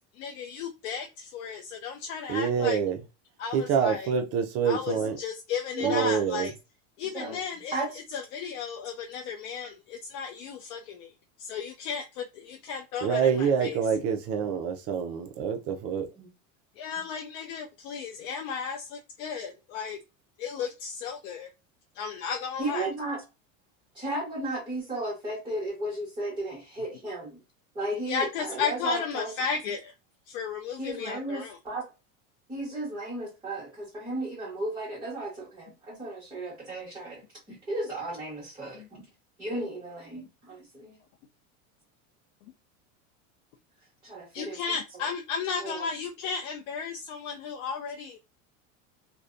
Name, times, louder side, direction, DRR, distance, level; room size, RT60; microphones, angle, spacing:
voice 1, 0.2-2.8 3.4-4.1 4.7-6.5 7.0-7.8 8.1-11.1 11.4-13.8 16.8-20.0 20.4-21.5 22.0-22.9 28.1-29.9 30.3-31.5 40.2-40.3 44.3-48.2, left 6 dB, 80° left, 0.5 m, -34 dB
voice 2, 2.3-3.0 3.5-5.2 5.8-6.5 13.0-16.1, right 7 dB, 40° right, 0.4 m, -26 dB
voice 3, 5.7-6.2 7.0-7.4 7.7-8.0 16.2-16.3 22.6-23.2 23.9-27.4 27.7-29.3 30.8-31.8 32.5-37.2 37.5-39.1 39.4-41.0 44.0-45.1 45.6-45.9, right 2 dB, 15° right, 0.9 m, -34 dB
2.5 x 2.1 x 2.4 m
supercardioid pair, 130°, 38 cm